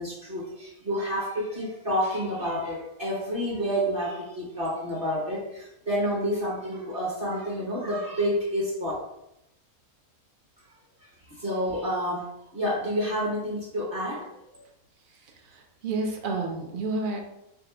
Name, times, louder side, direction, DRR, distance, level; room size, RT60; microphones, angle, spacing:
voice 1, 0.0-8.9 11.3-14.3, equal, 40° right, -4 dB, 1.1 m, -29 dB
voice 2, 15.1-17.2, right 3 dB, 60° right, 2 dB, 0.5 m, -31 dB
3.5 x 2.4 x 4.4 m, 0.84 s
omnidirectional pair, 1.6 m